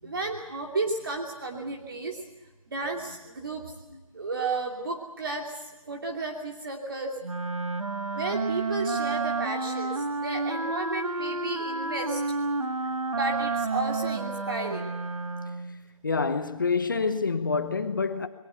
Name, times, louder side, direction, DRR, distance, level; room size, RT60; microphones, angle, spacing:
voice 1, 0.0-2.2 2.7-3.7 4.1-7.1 8.1-12.2 13.1-14.9, right 3 dB, 40° right, 2.8 m, -33 dB
Wind instrument woodwind instrument, 7.2-15.8, right 3 dB, 65° right, 1.7 m, -30 dB
voice 2, 16.0-18.3, left 4 dB, 35° left, 1.0 m, -27 dB
22.0 x 19.5 x 8.2 m
hypercardioid pair, 175°, 18 cm